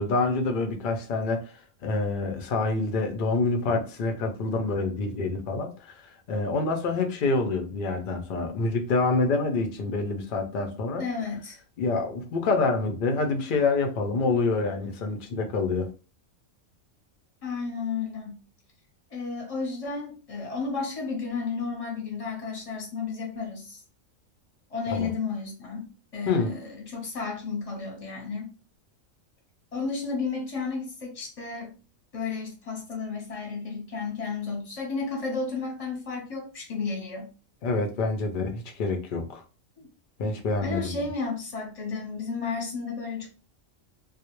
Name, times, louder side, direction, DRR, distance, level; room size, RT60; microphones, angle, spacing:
voice 1, 0.0-1.5 1.8-5.9 6.3-11.0 11.8-15.9 24.9-25.1 26.3-26.5 37.6-39.4 40.2-41.0, left 3 dB, 70° left, 0.5 m, -27 dB
voice 2, 11.0-11.6 17.4-18.4 19.1-23.8 24.7-28.5 29.7-31.7 32.1-37.3 39.8-39.9 40.2-40.3 40.6-43.3, left 4 dB, 35° left, 0.7 m, -32 dB
2.3 x 2.0 x 2.9 m
omnidirectional pair, 1.4 m